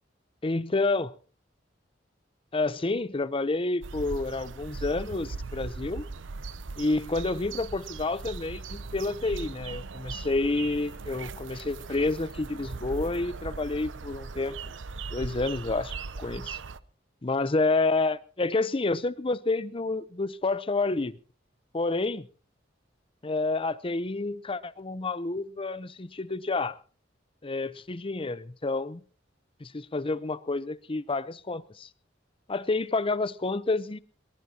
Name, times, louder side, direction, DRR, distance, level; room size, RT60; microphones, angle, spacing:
voice 1, 0.4-1.1 2.5-6.1 6.8-14.6 15.1-16.6 17.2-21.2 21.7-22.3 23.2-26.8 27.4-29.0 29.6-31.9 32.5-34.0, left 3 dB, 30° left, 0.7 m, -29 dB
sound 1, 3.8-16.8, right 4 dB, 85° right, 0.7 m, -39 dB
21.5 x 19.5 x 2.9 m
head